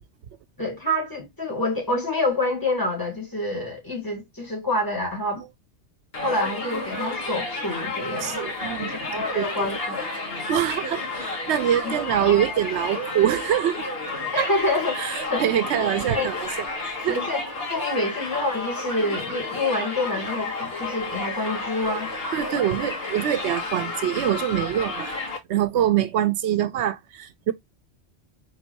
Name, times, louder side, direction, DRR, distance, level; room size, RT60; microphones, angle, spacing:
voice 1, 0.6-5.4 6.2-8.4 8.8-10.1 11.8-11.9 14.3-15.0 15.3-15.5 15.8-15.9 16.1-16.3 17.1-22.1, left 1 dB, 20° left, 2.4 m, -27 dB
Crowd, 6.1-25.4, left 2 dB, 60° left, 2.0 m, -31 dB
voice 2, 8.2-9.7 10.5-13.9 14.4-14.5 14.9-16.5 16.8-17.2 22.3-25.1 25.5-27.5, right 10 dB, 80° right, 0.9 m, -24 dB
4.5 x 3.7 x 2.6 m
omnidirectional pair, 1.2 m